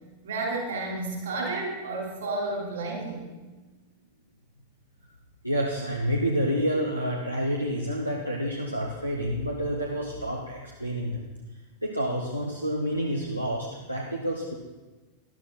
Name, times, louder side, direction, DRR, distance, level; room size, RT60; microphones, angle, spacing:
voice 1, 0.2-3.3, right 2 dB, 65° right, -2 dB, 3.9 m, -31 dB
voice 2, 5.4-11.2 11.8-14.5, equal, 90° right, -2 dB, 1.1 m, -28 dB
12.0 x 11.0 x 4.2 m, 1.2 s
figure-of-eight pair, 90°, 0 cm